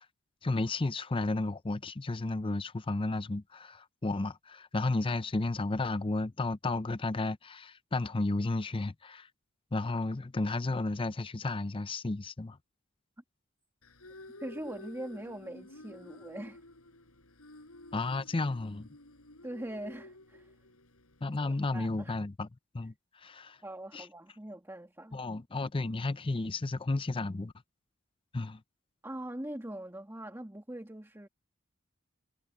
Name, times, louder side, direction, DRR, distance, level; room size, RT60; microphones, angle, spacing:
voice 1, 0.4-9.3 9.7-12.6 17.9-18.9 21.2-22.5 22.7-22.9 23.2-23.6 23.9-24.1 25.1-27.5 28.3-28.6, left 2 dB, 25° left, 0.5 m, -32 dB
sound 1, 13.8-22.0, left 2 dB, 85° left, 5.8 m, -52 dB
voice 2, 14.4-16.6 19.4-20.5 21.4-22.2 23.6-25.2 29.0-31.3, right 1 dB, 10° right, 2.0 m, -42 dB
head